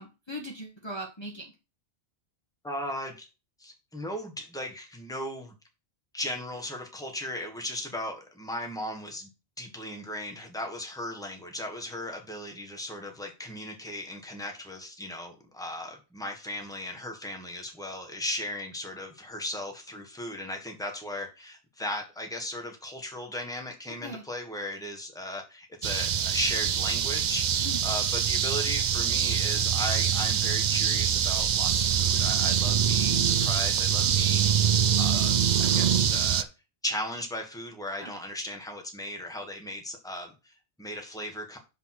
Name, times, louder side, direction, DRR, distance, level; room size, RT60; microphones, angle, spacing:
voice 1, 0.0-1.5 24.0-24.2 27.6-27.8 38.0-38.1, equal, 25° left, -2 dB, 1.4 m, -39 dB
voice 2, 2.6-3.3 3.6-5.5 6.1-9.3 9.6-36.5 36.8-41.6, left 1 dB, 5° left, 3 dB, 1.5 m, -37 dB
sound 1, 25.8-36.4, right 8 dB, 50° right, 0.6 m, -24 dB
6.3 x 5.2 x 5.9 m, 0.30 s
omnidirectional pair, 1.1 m